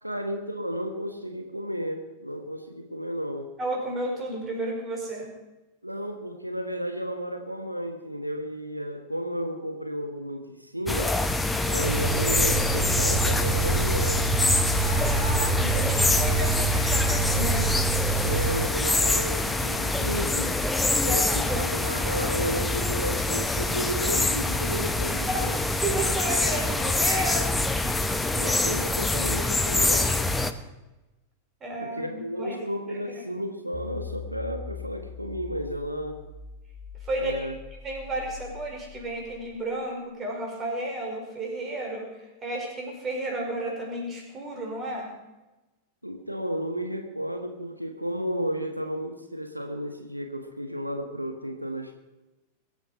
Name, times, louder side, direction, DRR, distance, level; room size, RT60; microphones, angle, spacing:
voice 1, 0.0-3.5 5.8-11.2 11.7-14.3 18.2-20.6 21.0-25.6 28.3-30.3 31.8-36.2 37.2-37.5 46.0-51.9, equal, 90° right, 4 dB, 1.3 m, -33 dB
voice 2, 3.6-5.3 14.7-17.7 21.0-21.7 25.3-25.4 25.8-27.5 31.6-32.6 33.1-33.2 37.0-37.5 37.8-45.1, right 1 dB, 25° right, 1 dB, 5.1 m, -32 dB
sound 1, 10.9-30.5, left 2 dB, 10° left, 1.0 m, -25 dB
sound 2, 11.8-18.7, right 6 dB, 45° right, 3.4 m, -28 dB
sound 3, 33.7-40.0, left 6 dB, 40° left, 1.6 m, -42 dB
22.0 x 9.1 x 5.5 m, 1.1 s
figure-of-eight pair, 90°, 0 cm